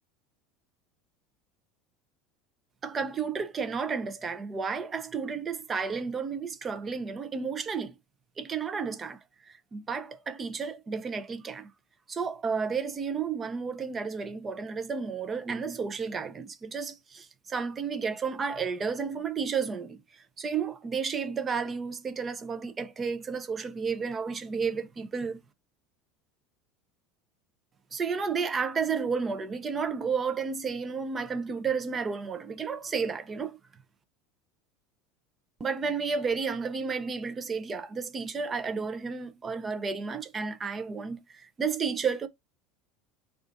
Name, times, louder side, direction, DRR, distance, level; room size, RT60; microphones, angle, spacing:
voice 1, 2.8-7.9 8.4-11.7 12.1-20.0 20.4-25.4 27.9-33.6 35.6-42.3, right 5 dB, 20° right, 0.5 m, -32 dB
3.8 x 2.4 x 3.8 m
cardioid pair, 165°, 0 cm